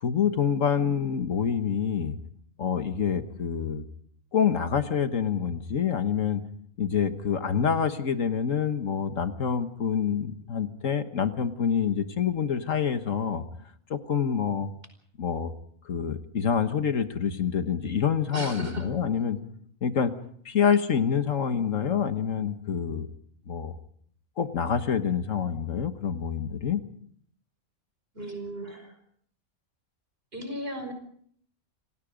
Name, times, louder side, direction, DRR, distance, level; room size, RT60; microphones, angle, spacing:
voice 1, 0.0-2.2 2.6-3.8 4.3-6.4 6.8-13.4 13.9-14.7 15.2-15.5 15.8-19.4 19.8-20.1 20.4-23.1 23.5-23.7 24.4-26.8, left 7 dB, 70° left, 9 dB, 1.6 m, -27 dB
voice 2, 18.3-18.9 28.1-29.0 30.3-30.9, right 1 dB, 45° right, 7 dB, 5.3 m, -35 dB
28.5 x 19.0 x 5.1 m, 0.62 s
omnidirectional pair, 1.4 m